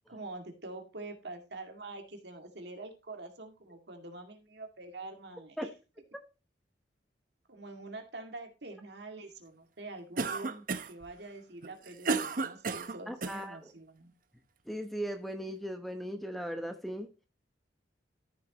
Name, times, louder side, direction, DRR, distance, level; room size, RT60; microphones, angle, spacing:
voice 1, 0.1-5.6 7.5-14.1, right 2 dB, 65° right, 2.3 m, -45 dB
Cough, 10.2-11.0 11.6-13.4, right 4 dB, 50° right, 0.8 m, -33 dB
voice 2, 13.1-13.7 14.7-17.1, equal, ahead, 0.9 m, -38 dB
13.5 x 6.6 x 2.9 m
head